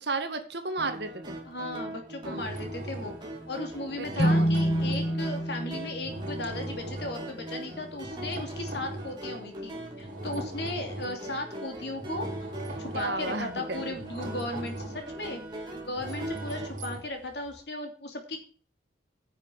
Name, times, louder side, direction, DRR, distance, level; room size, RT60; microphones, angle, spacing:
voice 1, 0.0-1.4 2.2-2.4 4.0-4.5 12.9-14.0, right 3 dB, 60° right, 7 dB, 1.9 m, -33 dB
sound 1, 0.8-16.7, right 1 dB, 25° right, 3.1 m, -41 dB
voice 2, 1.4-12.3 12.8-15.4 15.8-18.4, left 1 dB, 60° left, 4 dB, 2.8 m, -36 dB
sound 2, 2.4-3.4 3.9-5.6 6.0-7.2 8.0-9.3 10.0-11.3 11.8-17.6, right 1 dB, 45° right, 4.7 m, -39 dB
sound 3, 4.2-7.7, equal, 35° left, 0.9 m, -29 dB
9.9 x 7.1 x 7.1 m, 0.43 s
head